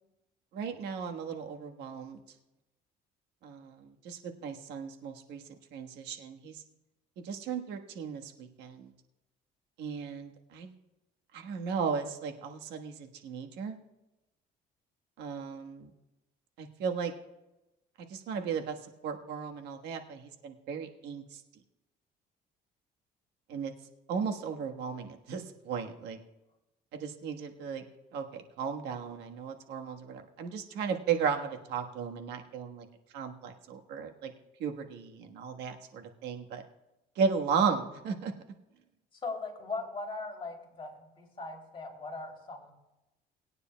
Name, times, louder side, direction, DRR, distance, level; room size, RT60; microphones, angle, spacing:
voice 1, 0.5-2.2 3.4-5.4 5.7-6.6 7.2-8.9 9.8-10.7 11.3-13.8 15.2-15.9 16.6-17.1 18.1-18.8 19.0-21.2 23.5-23.7 24.1-26.2 26.9-27.8 28.1-32.8 33.1-34.3 34.6-36.6 37.2-38.3, right 6 dB, 85° right, 4 dB, 1.4 m, -35 dB
voice 2, 39.1-42.7, left 3 dB, 30° left, -1 dB, 3.1 m, -39 dB
20.0 x 9.7 x 2.3 m, 0.95 s
cardioid pair, 110°, 17 cm